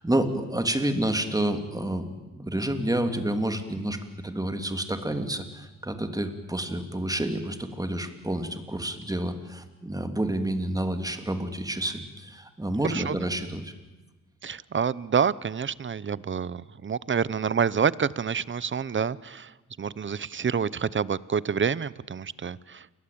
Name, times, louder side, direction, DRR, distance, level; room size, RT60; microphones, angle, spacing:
voice 1, 0.0-13.7, right 1 dB, 10° right, 7 dB, 3.0 m, -29 dB
voice 2, 14.4-22.9, right 6 dB, 40° right, 19 dB, 0.8 m, -28 dB
29.0 x 22.5 x 8.8 m, 1.2 s
cardioid pair, 100°, 32 cm